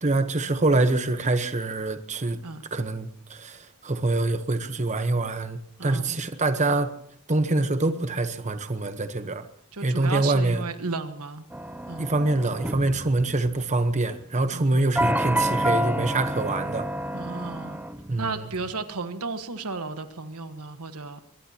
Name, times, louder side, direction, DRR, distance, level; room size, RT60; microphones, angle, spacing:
voice 1, 0.0-2.4 2.7-6.9 7.3-9.5 9.8-10.6 12.0-16.9 18.1-18.5, right 2 dB, 30° right, 1.0 m, -25 dB
voice 2, 5.8-6.2 9.7-11.5 11.9-12.1 14.5-14.8 17.1-17.8 18.2-21.2, right 3 dB, 85° right, 1.4 m, -33 dB
sound 1, 11.5-13.9 14.9-18.6, equal, 10° right, 0.7 m, -29 dB
22.5 x 21.0 x 2.9 m
head